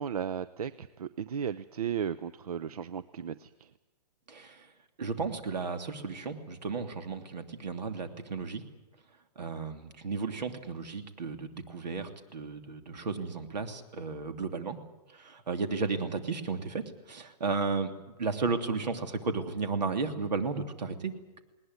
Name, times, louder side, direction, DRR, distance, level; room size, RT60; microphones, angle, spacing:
voice 1, 0.0-3.7, right 8 dB, 60° right, 15 dB, 0.7 m, -35 dB
voice 2, 4.3-4.7 5.0-8.6 9.4-14.8 15.1-17.9 18.2-21.4, right 4 dB, 85° right, 7 dB, 3.0 m, -34 dB
20.0 x 19.5 x 9.6 m, 1.0 s
hypercardioid pair, 175°, 21 cm